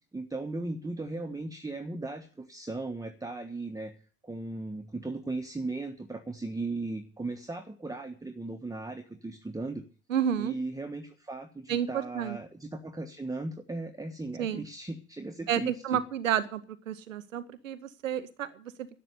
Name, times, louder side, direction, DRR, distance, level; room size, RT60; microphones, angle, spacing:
voice 1, 0.1-3.9 4.2-9.8 10.4-16.0, right 2 dB, 10° right, 6 dB, 1.3 m, -37 dB
voice 2, 10.1-10.6 11.7-12.4 14.4-14.6 15.5-16.6 16.9-18.9, right 9 dB, 80° right, 14 dB, 0.8 m, -30 dB
12.0 x 8.2 x 9.3 m, 0.41 s
figure-of-eight pair, 60°, 38 cm